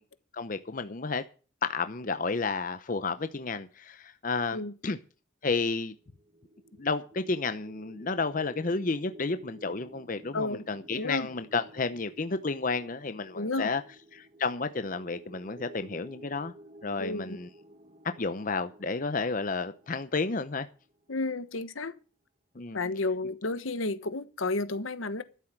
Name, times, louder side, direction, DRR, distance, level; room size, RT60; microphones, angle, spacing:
voice 1, 0.3-1.2 1.6-5.0 5.4-5.9 6.8-13.8 14.1-16.5 16.8-17.5 18.2-20.7 22.6-22.8, left 4 dB, 40° left, 0.7 m, -31 dB
sound 1, 6.1-21.2, right 1 dB, 30° right, 1.6 m, -53 dB
voice 2, 10.9-11.3 13.3-13.7 17.0-17.4 21.1-22.0 22.7-25.2, left 2 dB, 80° left, 1.2 m, -31 dB
13.0 x 7.8 x 7.3 m
head